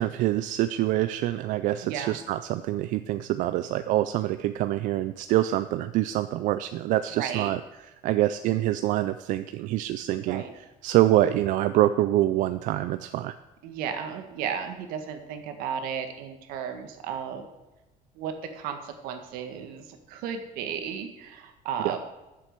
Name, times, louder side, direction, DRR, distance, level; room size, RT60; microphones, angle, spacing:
voice 1, 0.0-7.6 8.0-10.4 10.8-13.3 21.8-21.9, right 14 dB, 60° right, 11 dB, 0.4 m, -25 dB
voice 2, 1.8-2.2 7.1-7.5 10.2-10.5 13.6-17.5 18.2-22.0, right 7 dB, 80° right, 6 dB, 1.7 m, -34 dB
11.5 x 7.6 x 6.7 m, 1.1 s
cardioid pair, 170°, 15 cm